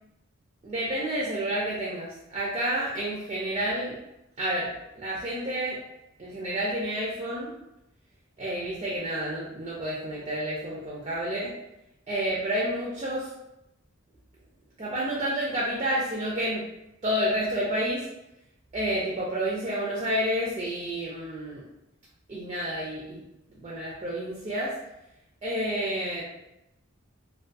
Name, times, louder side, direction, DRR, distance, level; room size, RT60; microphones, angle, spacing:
voice 1, 0.6-4.0 4.4-4.7 5.0-5.8 6.2-7.5 8.4-11.5 12.1-13.3 14.8-16.7 17.0-18.1 18.7-21.6 22.3-23.2 23.6-24.7 25.4-26.2, right 1 dB, 25° right, -5 dB, 0.3 m, -29 dB
2.3 x 2.2 x 2.5 m, 0.89 s
head